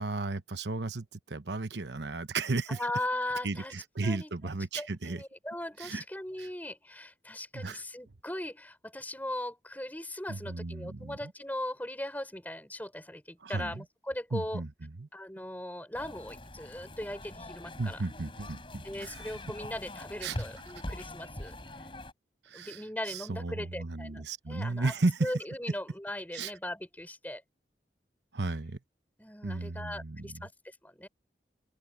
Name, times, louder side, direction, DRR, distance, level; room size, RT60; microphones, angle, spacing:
voice 1, 0.0-2.8 3.4-5.2 5.8-6.0 6.4-6.5 7.5-7.8 10.3-11.2 13.4-13.8 14.3-15.1 17.8-19.3 20.2-20.4 22.4-25.3 26.3-26.5 28.3-28.8 29.4-30.4, right 3 dB, 85° right, 1.0 m, -34 dB
voice 2, 2.7-3.7 4.0-4.3 4.7-14.6 15.1-18.0 18.8-21.6 22.5-24.9 25.2-27.4 29.2-31.1, left 1 dB, 10° left, 5.6 m, -39 dB
sound 1, 15.9-22.1, left 1 dB, 30° left, 4.5 m, -43 dB
head